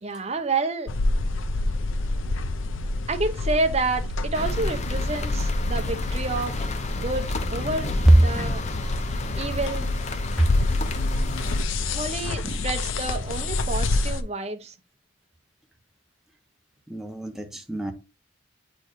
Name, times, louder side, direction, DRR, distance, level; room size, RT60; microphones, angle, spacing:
voice 1, 0.0-0.9 3.1-8.6 9.1-9.9 11.9-14.7, right 3 dB, 30° right, 0.8 m, -29 dB
sound 1, 0.9-14.2, left 2 dB, 75° left, 0.6 m, -27 dB
sound 2, 4.3-11.6, left 2 dB, 35° left, 0.6 m, -34 dB
voice 2, 16.9-17.9, right 1 dB, ahead, 0.8 m, -29 dB
8.7 x 4.4 x 3.0 m
head